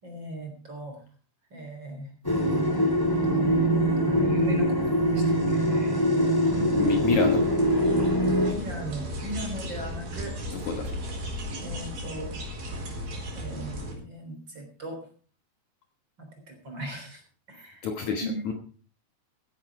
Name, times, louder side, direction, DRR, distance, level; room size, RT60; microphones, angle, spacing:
voice 1, 0.0-0.9 1.5-2.1 3.1-3.4 3.8-5.9 6.5-7.0 8.5-10.3 11.6-12.4 13.3-15.0 16.2-16.3 16.6-17.2 17.5-17.9 18.2-18.4, right 1 dB, 30° right, 3 dB, 4.0 m, -38 dB
sound 1, 2.2-8.5, equal, 10° left, 1.4 m, -23 dB
sound 2, 6.4-13.9, equal, 60° right, 5.8 m, -36 dB
voice 2, 6.7-7.5 10.5-11.0 17.8-18.5, left 5 dB, 60° left, 4 dB, 2.3 m, -28 dB
15.5 x 10.5 x 4.8 m, 0.40 s
omnidirectional pair, 4.5 m